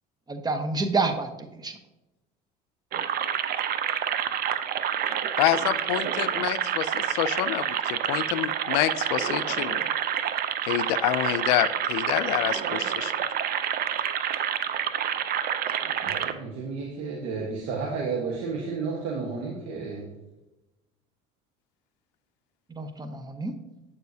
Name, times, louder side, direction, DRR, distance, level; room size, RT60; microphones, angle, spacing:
voice 1, 0.3-1.7 22.7-23.5, right 3 dB, 20° right, 7 dB, 0.9 m, -28 dB
sound 1, 2.9-16.3, right 9 dB, 50° right, 0.6 m, -28 dB
voice 2, 5.4-9.8 10.7-13.1, left 14 dB, 90° left, 13 dB, 0.4 m, -27 dB
voice 3, 16.0-20.1, right 4 dB, 70° right, -2 dB, 1.3 m, -32 dB
8.4 x 6.7 x 2.7 m, 0.99 s
supercardioid pair, 100°, 20 cm